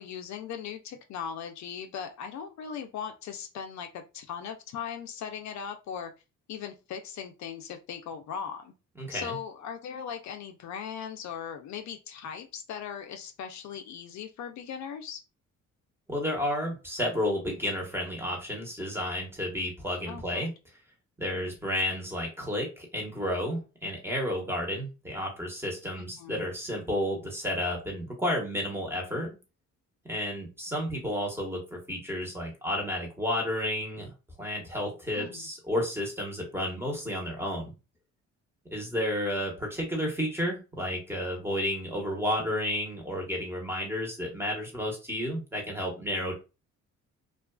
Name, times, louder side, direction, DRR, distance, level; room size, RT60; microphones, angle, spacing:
voice 1, 0.0-6.1 6.5-8.7 9.1-15.2 20.1-20.5 26.0-26.4 35.1-35.4, left 7 dB, 65° left, 0.5 m, -39 dB
voice 2, 9.0-9.4 16.1-20.5 21.2-29.3 30.0-34.1 34.4-37.7 38.7-46.3, left 1 dB, 10° right, 1.1 m, -31 dB
2.4 x 2.3 x 2.2 m
cardioid pair, 90°, 30 cm